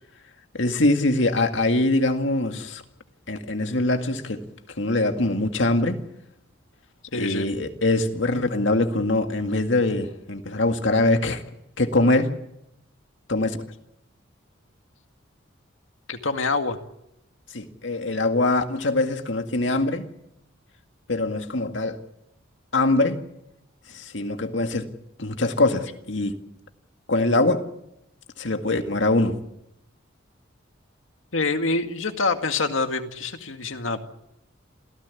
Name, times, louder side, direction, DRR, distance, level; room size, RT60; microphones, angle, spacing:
voice 1, 0.5-2.8 3.3-4.4 4.8-6.0 7.1-11.4 11.8-12.3 13.3-13.6 17.5-20.1 21.1-22.0 22.7-23.2 23.9-24.9 25.2-26.4 27.1-27.7 28.4-29.3, left 2 dB, 70° left, 2.0 m, -23 dB
voice 2, 7.1-7.5 16.1-16.8 31.3-34.0, left 3 dB, 90° left, 2.1 m, -26 dB
27.5 x 16.5 x 8.4 m
head